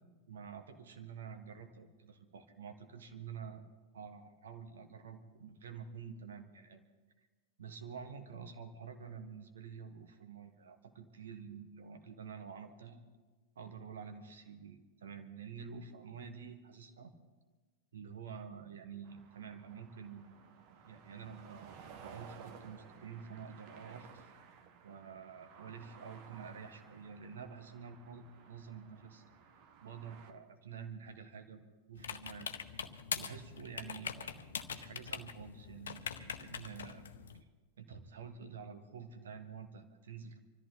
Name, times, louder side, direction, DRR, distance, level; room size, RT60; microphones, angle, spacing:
voice 1, 0.3-3.7 3.9-6.9 7.6-13.0 13.5-17.1 17.9-20.3 20.9-24.3 24.8-29.2 29.8-32.5 33.1-34.4 34.7-37.0 37.8-40.4, right 6 dB, 65° right, 7 dB, 1.6 m, -49 dB
sound 1, 19.0-30.3, right 6 dB, 45° right, 1.3 m, -56 dB
sound 2, 32.0-37.4, left 7 dB, 65° left, 0.8 m, -43 dB
25.0 x 14.0 x 4.0 m, 1.3 s
figure-of-eight pair, 90°, 0 cm